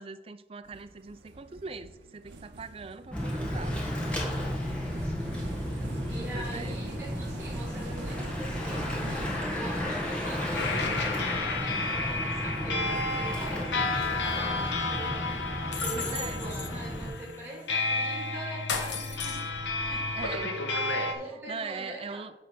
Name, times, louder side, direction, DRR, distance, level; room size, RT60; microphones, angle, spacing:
voice 1, 0.0-3.8 6.3-6.8 15.9-16.5 20.1-20.6 21.3-22.3, right 4 dB, 30° right, 11 dB, 0.4 m, -41 dB
sound 1, 0.7-9.4, right 3 dB, 85° right, 0.7 m, -44 dB
Bicycle / Mechanisms, 3.1-17.1, left 1 dB, 5° left, 1.5 m, -33 dB
voice 2, 4.8-5.3 6.1-15.2 15.8-20.2 21.1-22.3, right 1 dB, 15° right, -5 dB, 3.1 m, -43 dB
sound 2, 10.6-21.1, left 3 dB, 85° left, 1.1 m, -31 dB
9.8 x 3.5 x 6.5 m, 1.0 s
head